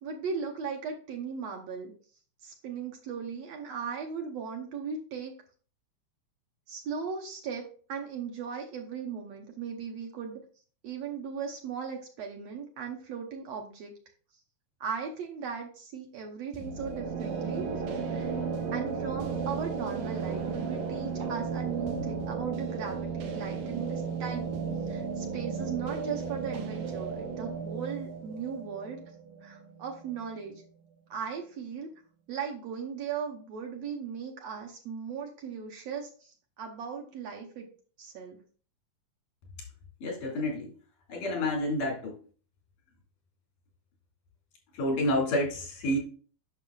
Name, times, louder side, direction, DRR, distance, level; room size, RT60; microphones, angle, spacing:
voice 1, 0.0-1.9 2.4-5.3 6.7-7.6 7.9-10.4 10.8-13.9 14.8-17.7 18.1-18.3 18.7-29.0 29.4-30.6 31.1-31.9 32.3-37.7 38.0-38.4, right 6 dB, 70° right, 2 dB, 1.7 m, -37 dB
sound 1, 16.5-30.2, right 5 dB, 85° right, 2.6 m, -34 dB
voice 2, 40.0-40.7 41.1-42.2 44.7-46.0, left 1 dB, 90° left, 0 dB, 3.9 m, -29 dB
9.0 x 6.2 x 2.3 m, 0.41 s
omnidirectional pair, 3.7 m